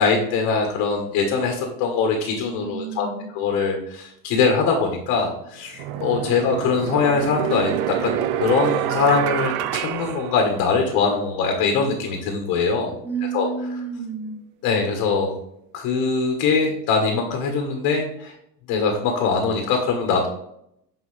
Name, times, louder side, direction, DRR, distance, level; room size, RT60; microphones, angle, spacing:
voice 1, 0.0-3.1 3.3-12.9 13.3-13.5 14.6-15.3 15.7-18.3 18.7-20.3, left 5 dB, 40° left, 3 dB, 1.4 m, -22 dB
voice 2, 2.6-3.3 13.0-14.4, right 5 dB, 5° right, 2 dB, 0.7 m, -30 dB
sound 1, 5.0-5.2 5.8-11.0, right 11 dB, 45° right, 0.5 m, -27 dB
7.7 x 4.9 x 3.3 m, 0.74 s
supercardioid pair, 135°, 48 cm